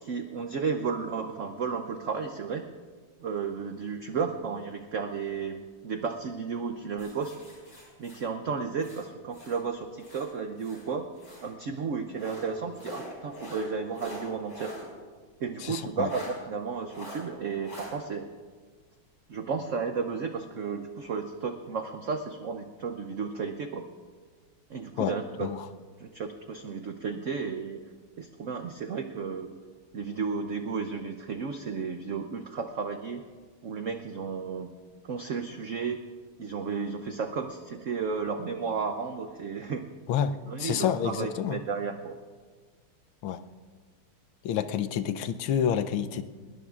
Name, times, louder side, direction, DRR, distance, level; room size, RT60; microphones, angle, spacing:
voice 1, 0.0-2.6 3.2-7.3 8.0-11.1 11.4-14.7 15.4-18.3 19.3-23.8 24.7-25.5 26.0-27.8 28.2-29.5 29.9-33.2 33.6-34.7 35.0-36.0 36.4-39.9 40.5-42.2, right 5 dB, 90° right, 7 dB, 0.6 m, -33 dB
sound 1, 7.0-9.6 10.0-11.5 12.1-14.9 15.2-15.3 16.0-16.3 16.9-17.2 17.6-17.9, left 1 dB, 40° left, 6.1 m, -44 dB
voice 2, 15.6-16.1 25.0-25.1 25.4-25.6 40.1-40.3 40.6-41.6 43.2-43.4 44.4-46.2, left 9 dB, 80° left, 10 dB, 1.5 m, -28 dB
21.0 x 19.5 x 2.4 m, 1.5 s
omnidirectional pair, 2.3 m